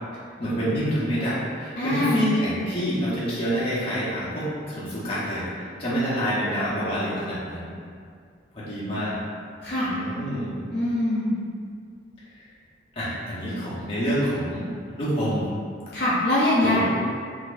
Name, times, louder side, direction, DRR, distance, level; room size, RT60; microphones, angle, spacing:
voice 1, 0.4-5.4 5.8-7.7 8.6-9.2 9.8-10.6 13.0-14.7 15.0-15.5 16.6-16.8, equal, 30° left, -10 dB, 0.9 m, -27 dB
voice 2, 1.8-2.3 9.6-9.9 10.7-11.4 15.9-16.8, left 1 dB, 55° left, -9 dB, 0.6 m, -23 dB
4.1 x 2.6 x 2.5 m, 2.2 s
head